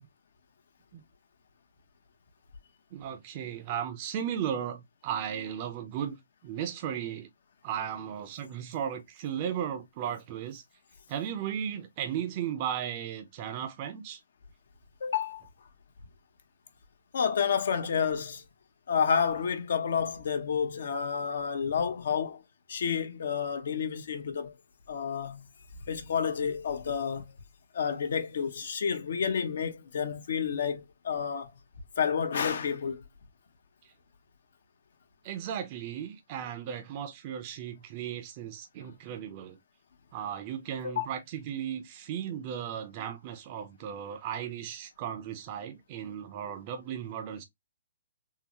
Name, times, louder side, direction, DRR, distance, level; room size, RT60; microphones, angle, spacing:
voice 1, 2.9-6.2 6.4-7.3 7.6-10.6 11.1-14.2 35.2-39.6 40.1-47.4, right 9 dB, 35° right, 0.5 m, -36 dB
voice 2, 15.0-15.4 17.1-18.4 18.9-22.4 22.7-24.5 24.9-25.5 25.9-27.3 27.7-31.5 32.0-33.0 40.8-41.1, left 7 dB, 70° left, 0.7 m, -30 dB
3.7 x 2.0 x 2.8 m
hypercardioid pair, 150°, 0 cm